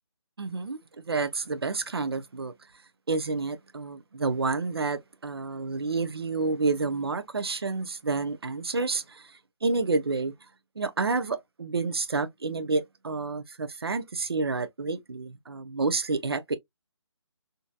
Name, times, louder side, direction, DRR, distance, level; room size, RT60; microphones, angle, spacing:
voice 1, 0.4-0.8 1.1-2.5 3.1-10.3 10.8-16.6, right 3 dB, 55° right, 0.6 m, -29 dB
3.8 x 2.7 x 2.3 m
hypercardioid pair, 180°, 15 cm